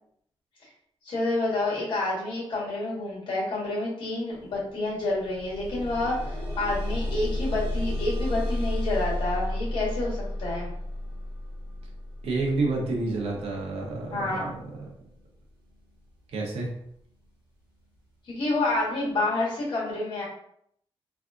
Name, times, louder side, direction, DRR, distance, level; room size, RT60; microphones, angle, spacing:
voice 1, 1.0-10.7 14.1-14.5 18.2-20.2, left 2 dB, 55° left, -6 dB, 1.5 m, -29 dB
sound 1, 4.4-4.5 4.9-15.9 16.7-16.8 17.2-17.3, left 1 dB, 20° right, 1.3 m, -33 dB
voice 2, 12.2-14.5 14.8-14.9 16.3-16.7, right 3 dB, 80° right, -1 dB, 0.9 m, -29 dB
3.4 x 2.4 x 2.5 m, 0.69 s
wide cardioid pair, 175°, 10 cm